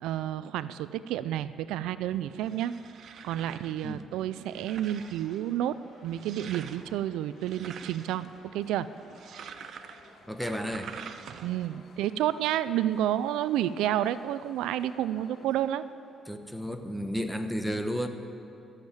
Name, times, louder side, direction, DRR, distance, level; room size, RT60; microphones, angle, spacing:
voice 1, 0.0-2.7 3.2-8.3 8.5-8.9 11.4-15.8, right 12 dB, 90° right, 15 dB, 0.3 m, -30 dB
sound 1, 2.1-11.8, right 7 dB, 65° right, 0.7 m, -47 dB
sound 2, 4.7-17.0, left 4 dB, 55° left, 1.3 m, -58 dB
voice 2, 10.3-11.0 16.3-18.1, equal, ahead, 6 dB, 1.1 m, -32 dB
13.5 x 7.3 x 9.0 m, 2.7 s
cardioid pair, 85°, 0 cm